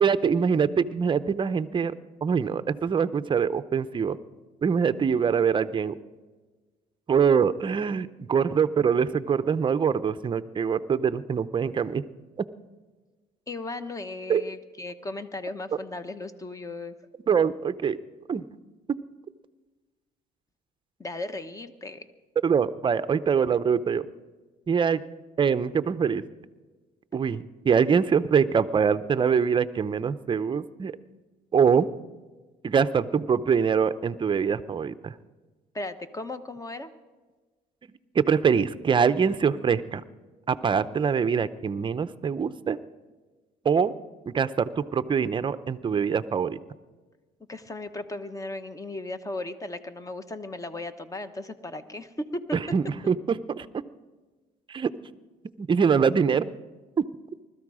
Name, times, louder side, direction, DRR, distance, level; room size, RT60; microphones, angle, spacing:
voice 1, 0.0-1.9 2.2-4.2 4.6-5.9 7.1-12.0 14.3-14.4 17.3-18.0 18.3-18.4 22.4-24.1 24.7-25.0 25.4-26.2 27.1-30.9 31.5-31.9 32.6-35.1 38.1-40.0 40.5-42.8 43.6-43.9 44.3-46.6 52.5-53.7 54.7-54.9 55.6-56.5, right 6 dB, 30° right, 13 dB, 0.6 m, -24 dB
voice 2, 13.5-16.9 21.0-22.0 35.7-36.9 47.5-52.4, left 2 dB, 20° left, 11 dB, 1.0 m, -36 dB
20.5 x 13.5 x 4.9 m, 1.3 s
cardioid pair, 110°, 17 cm